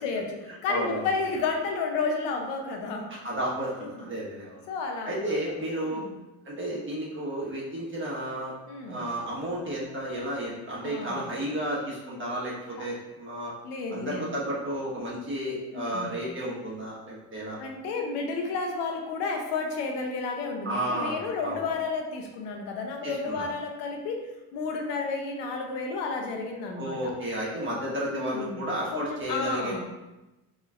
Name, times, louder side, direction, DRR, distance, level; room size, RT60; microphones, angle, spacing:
voice 1, 0.0-3.1 3.8-4.0 4.7-5.4 5.8-6.1 8.7-9.0 10.8-11.2 12.8-12.9 13.6-14.2 15.7-16.1 17.6-24.2 24.5-27.0 28.1-29.8, left 4 dB, 90° left, 2 dB, 0.7 m, -32 dB
voice 2, 0.7-1.1 3.1-3.7 4.0-4.7 5.0-6.0 6.4-8.5 8.9-13.5 13.9-17.6 20.6-21.6 23.0-23.5 26.8-29.8, right 1 dB, 30° right, -6 dB, 1.3 m, -32 dB
3.9 x 3.1 x 2.4 m, 1.0 s
cardioid pair, 100°, 41 cm